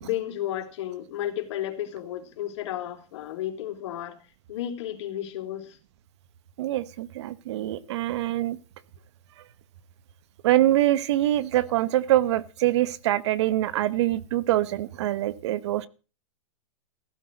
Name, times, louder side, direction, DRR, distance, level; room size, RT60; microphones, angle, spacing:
voice 1, 0.0-4.2 4.5-5.8, left 12 dB, 60° left, 4 dB, 3.9 m, -32 dB
voice 2, 6.6-8.6 10.4-15.9, right 14 dB, 55° right, 19 dB, 0.9 m, -24 dB
15.5 x 8.5 x 7.8 m, 0.37 s
hypercardioid pair, 150°, 17 cm